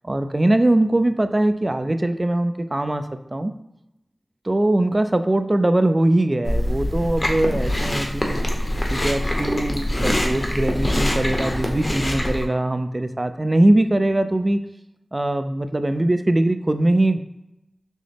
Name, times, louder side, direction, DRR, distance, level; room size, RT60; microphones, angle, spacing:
voice 1, 0.0-3.0 3.3-3.5 4.5-8.4 8.9-14.6 15.1-17.2, right 1 dB, 35° right, 9 dB, 0.3 m, -21 dB
Chewing mastication, 6.4-12.5, left 1 dB, 35° left, 0.8 m, -24 dB
6.1 x 2.1 x 3.3 m, 0.88 s
wide cardioid pair, 60°, 0 cm